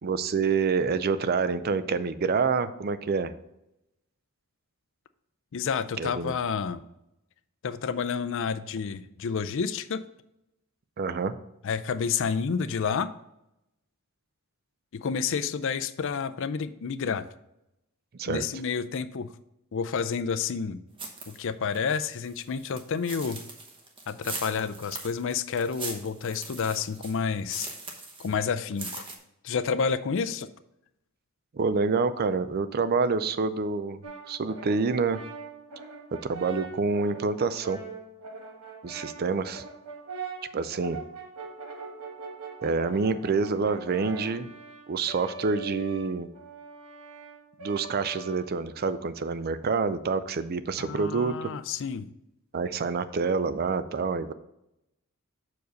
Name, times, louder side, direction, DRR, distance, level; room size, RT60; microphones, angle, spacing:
voice 1, 0.0-3.3 6.0-6.3 11.0-11.4 18.2-18.5 31.5-34.0 34.3-35.2 36.2-37.8 38.8-39.6 40.5-41.0 42.6-44.5 44.9-46.3 47.6-51.5 52.5-54.3, right 4 dB, 45° right, 13 dB, 0.4 m, -27 dB
voice 2, 5.5-6.8 7.6-10.0 11.6-13.1 14.9-17.2 18.3-19.3 19.7-20.8 21.3-23.4 24.1-27.7 28.2-29.1 29.4-30.5 50.8-52.1, left 6 dB, 60° left, 12 dB, 0.4 m, -29 dB
sound 1, 21.0-21.4 21.7-28.3 28.6-29.1, right 3 dB, 25° right, 1.0 m, -40 dB
Brass instrument, 34.0-48.8, right 4 dB, 90° right, 1.2 m, -42 dB
6.3 x 4.8 x 5.2 m, 0.84 s
head